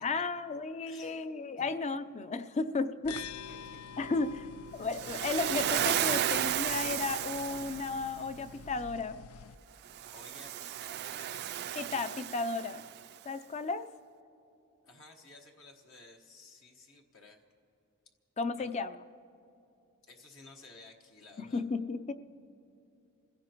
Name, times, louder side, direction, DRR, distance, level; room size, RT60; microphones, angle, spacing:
voice 1, 0.0-3.1 4.0-4.4 4.8-9.2 11.8-12.8 13.3-13.9 18.4-19.0 21.4-22.1, left 3 dB, 30° left, 12 dB, 0.5 m, -34 dB
voice 2, 0.8-1.2 1.6-1.7 3.1-3.7 5.6-5.7 10.1-11.4 14.8-17.4 18.6-18.7 20.1-21.6, left 3 dB, 65° left, 2 dB, 1.4 m, -55 dB
sound 1, 3.0-9.5, left 7 dB, 90° left, 0.4 m, -47 dB
Waves surf, 4.9-8.1 9.9-13.0, right 10 dB, 50° right, 0.4 m, -33 dB
27.5 x 16.0 x 3.0 m, 2.7 s
head